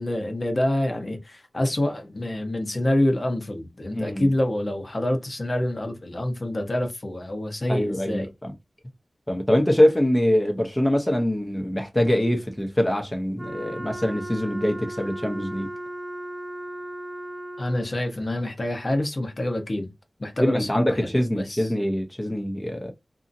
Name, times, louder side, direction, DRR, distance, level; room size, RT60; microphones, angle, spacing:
voice 1, 0.0-8.3 17.6-19.9 20.2-21.7, left 1 dB, 50° left, 0.9 m, -27 dB
voice 2, 3.9-4.3 7.7-8.5 9.3-15.7 20.4-22.9, left 1 dB, 15° left, 0.7 m, -23 dB
Wind instrument woodwind instrument, 13.4-18.0, right 1 dB, 60° right, 0.6 m, -36 dB
2.8 x 2.6 x 2.5 m
wide cardioid pair, 50°, 0 cm